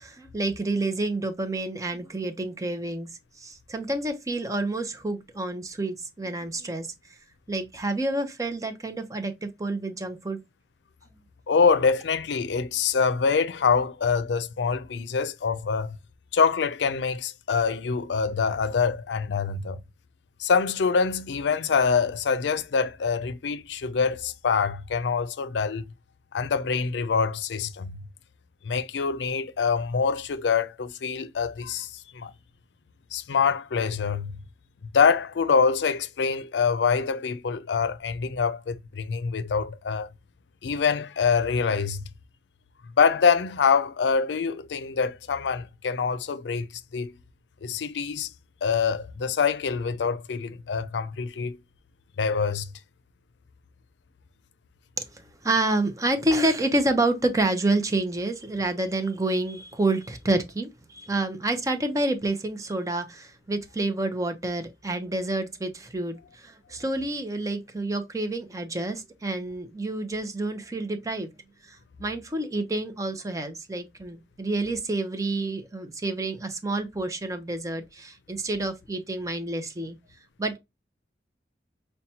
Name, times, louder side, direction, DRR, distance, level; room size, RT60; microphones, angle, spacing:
voice 1, 0.0-3.1 3.4-6.9 7.5-10.4 55.0-71.3 71.6-80.0 80.4-80.6, right 2 dB, 20° right, 0.6 m, -28 dB
voice 2, 11.5-16.0 16.3-19.8 20.4-25.8 26.3-28.0 28.6-32.3 33.1-34.4 34.9-40.1 40.6-42.1 43.0-46.7 46.9-47.1 47.6-48.3 48.6-51.6 52.2-52.7, left 5 dB, 85° left, 0.5 m, -25 dB
5.6 x 2.2 x 2.8 m
head